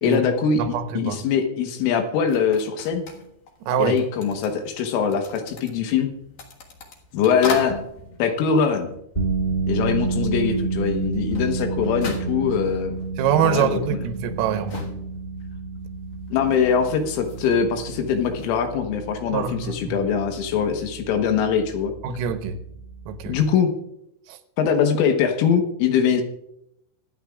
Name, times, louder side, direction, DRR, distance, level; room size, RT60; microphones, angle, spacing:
voice 1, 0.0-0.6 1.0-3.0 3.8-6.1 7.1-7.8 8.2-8.9 9.7-13.0 13.4-13.7 16.3-21.9 23.3-23.7 24.6-26.2, left 7 dB, 75° left, 5 dB, 3.6 m, -22 dB
voice 2, 0.6-1.2 3.7-4.0 13.2-14.8 19.3-19.9 22.0-22.6 23.1-23.4 24.3-24.4, right 8 dB, 90° right, 7 dB, 3.6 m, -24 dB
sound 1, 2.3-9.6 9.8-18.6, left 4 dB, 60° left, 2.2 m, -40 dB
sound 2, 9.1-23.4, right 4 dB, 20° left, 2.0 m, -30 dB
24.0 x 10.0 x 2.4 m, 0.79 s
omnidirectional pair, 5.9 m